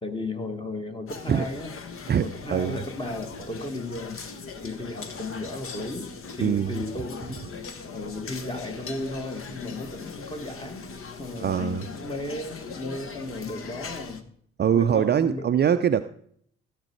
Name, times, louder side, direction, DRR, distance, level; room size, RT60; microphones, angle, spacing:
voice 1, 0.0-7.4 7.9-10.9 11.2-14.3 14.7-15.5, left 2 dB, 15° left, 6 dB, 1.9 m, -35 dB
sound 1, 1.1-14.2, left 4 dB, 40° left, 1.4 m, -40 dB
voice 2, 2.1-2.8 6.4-6.7 11.3-11.9 14.6-16.0, right 8 dB, 30° right, 10 dB, 0.6 m, -23 dB
15.5 x 7.4 x 4.7 m, 0.62 s
figure-of-eight pair, 45°, 32 cm